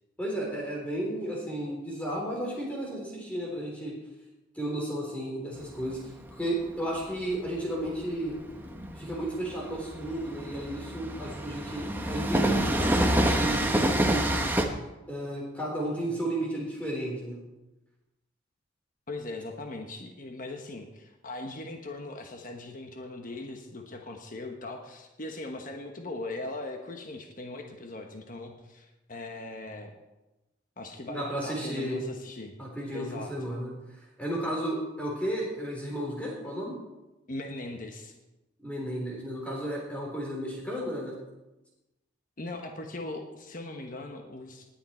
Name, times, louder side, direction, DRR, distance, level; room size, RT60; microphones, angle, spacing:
voice 1, 0.2-3.9 4.6-6.0 6.3-8.4 9.0-14.4 15.1-17.4 31.1-32.0 32.6-33.7 34.2-36.7 38.6-41.1, right 1 dB, 5° left, -3 dB, 3.6 m, -33 dB
Train, 5.6-14.7, right 1 dB, 10° right, 1.0 m, -28 dB
voice 2, 19.1-29.9 30.8-32.5 32.9-33.3 37.3-38.1 42.4-44.7, left 2 dB, 45° left, 3 dB, 1.2 m, -39 dB
19.5 x 8.9 x 4.4 m, 1.0 s
head